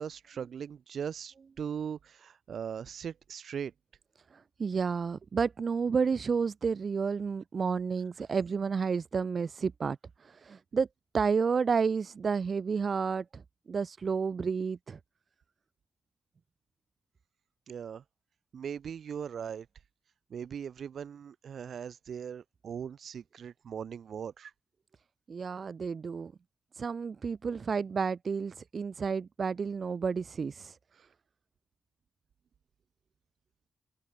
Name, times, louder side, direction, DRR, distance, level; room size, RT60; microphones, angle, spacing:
voice 1, 0.0-3.7 17.7-18.0 18.5-19.7 20.3-24.5, right 8 dB, 70° right, 1.5 m, -39 dB
voice 2, 4.3-10.9 11.1-13.4 13.7-15.0 25.3-26.3 26.7-30.8, right 5 dB, 50° right, 0.5 m, -31 dB
cardioid pair, 95°, 0 cm